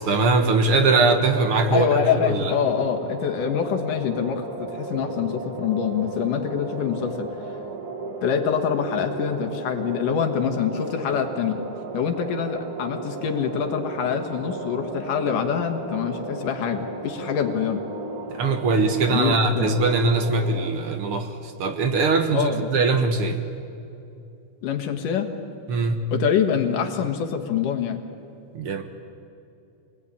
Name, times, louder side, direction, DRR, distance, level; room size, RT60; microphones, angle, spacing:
voice 1, 0.0-2.5 18.3-23.5 25.7-26.1 28.5-28.8, right 3 dB, 55° right, 7 dB, 1.9 m, -21 dB
sound 1, 0.9-20.7, right 3 dB, 35° right, 1.7 m, -34 dB
voice 2, 1.7-7.3 8.2-11.6 11.9-17.8 19.1-19.7 22.3-22.7 24.6-25.3 26.1-28.0, left 8 dB, 85° left, 5 dB, 3.1 m, -25 dB
26.0 x 20.0 x 9.9 m, 2.7 s
omnidirectional pair, 3.6 m